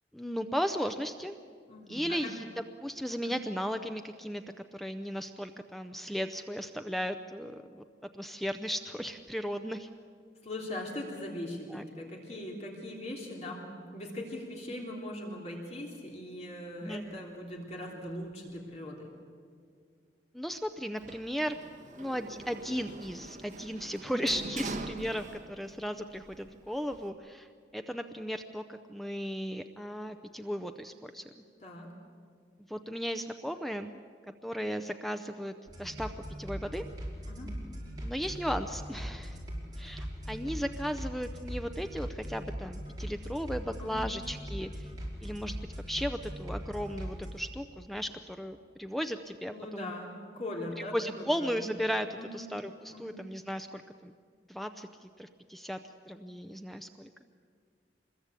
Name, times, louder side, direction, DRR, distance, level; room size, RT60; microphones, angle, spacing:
voice 1, 0.1-1.4 1.9-2.5 2.8-4.4 4.7-7.8 8.1-9.9 11.7-11.8 16.8-17.1 20.3-21.6 22.0-31.2 32.7-34.0 34.4-36.1 36.4-36.9 38.0-39.4 39.8-44.9 45.2-49.9 50.9-54.1 54.5-55.8 56.1-57.1, equal, ahead, 8 dB, 0.6 m, -36 dB
voice 2, 1.7-2.3 3.1-3.4 10.4-19.1 24.5-24.9 31.6-31.9 37.3-37.6 43.8-44.1 49.5-51.6 52.1-52.5 52.9-53.2, left 1 dB, 40° left, -1 dB, 3.2 m, -40 dB
Sliding door, 21.0-25.8 26.2-27.1, right 3 dB, 45° right, 1.5 m, -44 dB
sound 1, 35.7-47.3, equal, 25° right, 5.3 m, -40 dB
26.0 x 21.5 x 8.4 m, 2.1 s
head